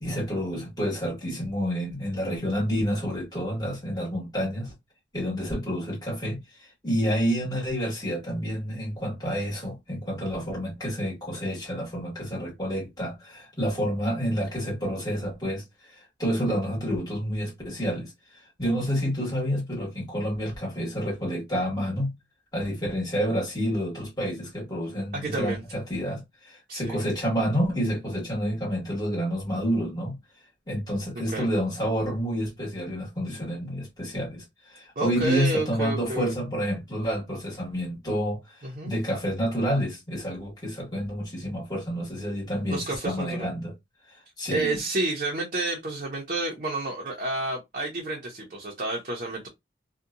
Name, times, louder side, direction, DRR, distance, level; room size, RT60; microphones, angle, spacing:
voice 1, 0.0-4.7 5.1-18.1 18.6-22.1 22.5-30.2 30.7-38.6 38.8-43.7 44.4-44.8, equal, 20° left, 1.4 m, -29 dB
voice 2, 25.2-25.6 26.7-27.0 31.3-31.5 35.0-36.3 38.6-38.9 42.7-43.5 44.5-49.5, right 2 dB, 45° right, 0.6 m, -30 dB
2.7 x 2.2 x 2.4 m
head